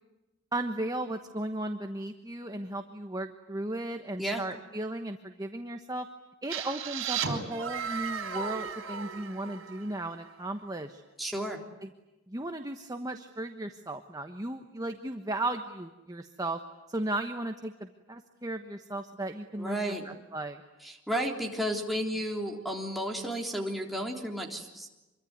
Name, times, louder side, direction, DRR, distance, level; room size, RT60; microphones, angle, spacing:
voice 1, 0.5-6.1 6.4-11.0 11.8-11.9 12.3-16.6 16.9-20.6, right 1 dB, 15° right, 6 dB, 1.2 m, -36 dB
sound 1, 6.5-10.2, right 6 dB, 65° right, 4.9 m, -35 dB
voice 2, 11.2-11.6 19.6-20.1 20.8-24.9, equal, ahead, 0 dB, 3.6 m, -33 dB
26.5 x 23.5 x 9.6 m, 1.1 s
head